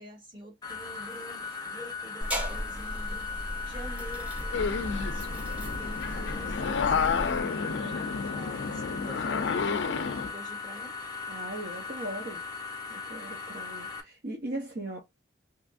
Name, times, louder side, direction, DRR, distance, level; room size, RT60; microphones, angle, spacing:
voice 1, 0.0-9.9 10.3-11.0, right 1 dB, 25° right, 2.0 m, -47 dB
sound 1, 0.6-14.0, left 4 dB, 20° left, 0.7 m, -38 dB
sound 2, 2.2-7.4, equal, 10° right, 1.0 m, -36 dB
sound 3, 4.5-10.3, left 5 dB, 75° left, 0.4 m, -30 dB
voice 2, 11.3-12.4 12.9-15.0, right 1 dB, 55° right, 0.9 m, -38 dB
3.4 x 3.0 x 2.5 m
head